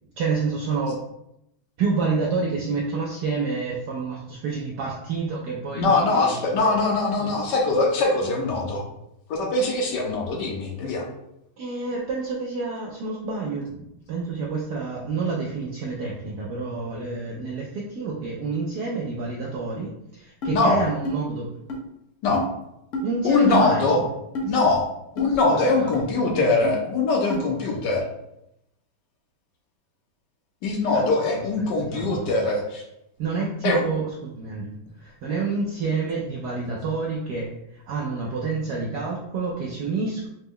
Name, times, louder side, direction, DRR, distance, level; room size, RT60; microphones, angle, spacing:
voice 1, 0.2-1.1 1.8-6.8 7.2-7.3 11.6-21.5 23.0-24.1 25.8-26.0 26.3-26.5 30.9-31.0 31.3-32.3 33.2-34.7 35.0-40.3, right 4 dB, 75° right, -2 dB, 0.9 m, -28 dB
voice 2, 5.7-8.9 9.3-11.0 20.5-20.8 22.2-22.4 23.2-24.0 24.4-24.9 25.2-28.0 30.6-32.8 33.6-33.8, left 3 dB, 65° left, 0 dB, 1.1 m, -22 dB
sound 1, 20.4-20.6 21.0-21.2 21.7-21.8 22.3-22.5 22.9-23.1 23.5-23.7 24.3-24.5 25.2-25.3 25.9-26.1 26.6-26.7 27.3-27.4, equal, 85° left, 0.6 m, -28 dB
4.9 x 2.2 x 3.6 m, 0.83 s
omnidirectional pair, 2.3 m